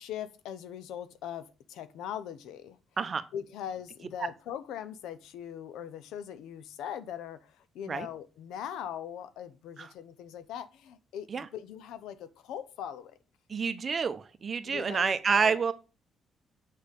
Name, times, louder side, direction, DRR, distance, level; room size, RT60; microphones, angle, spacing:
voice 1, 0.0-2.8 3.3-13.2 14.6-15.6, left 9 dB, 90° left, 14 dB, 0.7 m, -41 dB
voice 2, 13.5-15.7, right 5 dB, 40° right, 11 dB, 0.9 m, -28 dB
6.6 x 5.5 x 5.3 m, 0.33 s
cardioid pair, 90°, 0 cm